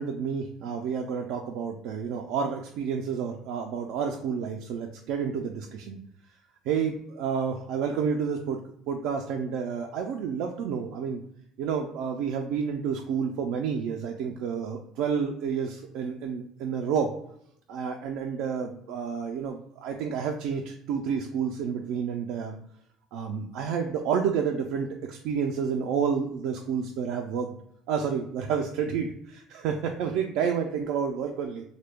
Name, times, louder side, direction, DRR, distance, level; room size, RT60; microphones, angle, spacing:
voice 1, 0.0-6.0 6.7-8.6 8.9-11.2 11.6-17.1 17.7-22.6 23.1-27.5 27.9-31.6, right 6 dB, 60° right, 3 dB, 0.3 m, -30 dB
3.6 x 2.2 x 3.3 m, 0.72 s
cardioid pair, 175°, 0 cm